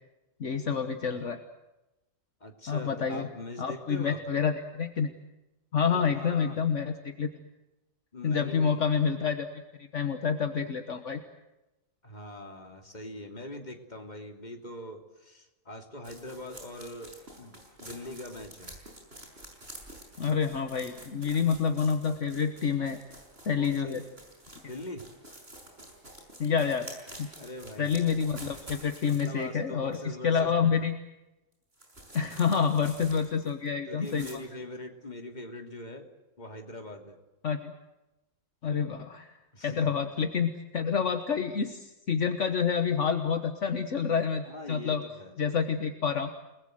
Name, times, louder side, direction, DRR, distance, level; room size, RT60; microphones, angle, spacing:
voice 1, 0.4-1.4 2.7-3.3 3.6-5.1 5.7-7.3 8.2-9.5 9.9-11.2 20.2-23.0 23.4-24.0 26.4-26.9 27.2-27.3 27.8-31.0 32.1-34.4 37.4-37.7 38.6-39.3 39.6-45.0 45.4-46.3, left 6 dB, 65° left, 7 dB, 1.6 m, -28 dB
voice 2, 2.4-4.2 5.8-6.6 8.1-8.8 12.0-18.8 23.6-24.1 24.6-25.4 27.4-27.9 29.1-30.9 33.8-36.1 36.4-37.2 39.5-39.9 44.4-45.4, left 1 dB, 30° left, 3 dB, 3.1 m, -42 dB
sound 1, 16.0-29.5 29.9-30.0 31.7-33.7 34.0-34.3, right 1 dB, 50° right, 6.3 m, -48 dB
29.5 x 20.0 x 7.8 m, 0.98 s
omnidirectional pair, 1.4 m